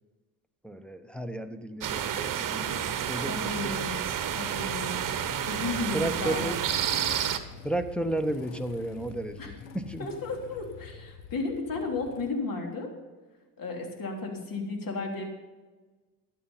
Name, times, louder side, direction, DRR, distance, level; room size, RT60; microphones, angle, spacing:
voice 1, 0.6-2.7 3.1-3.7 5.9-6.6 7.6-10.1, right 1 dB, ahead, 6 dB, 1.1 m, -33 dB
sound 1, 1.8-7.4, right 9 dB, 45° right, 1.2 m, -30 dB
voice 2, 2.5-3.0 3.3-4.0 4.3-5.0 5.5-6.4 9.4-9.5 10.0-12.9 13.6-15.3, left 3 dB, 45° left, 2 dB, 3.3 m, -34 dB
Motorcycle / Engine starting, 3.5-12.3, left 6 dB, 85° left, 1.0 m, -47 dB
12.5 x 9.1 x 5.6 m, 1.3 s
hypercardioid pair, 60°, 47 cm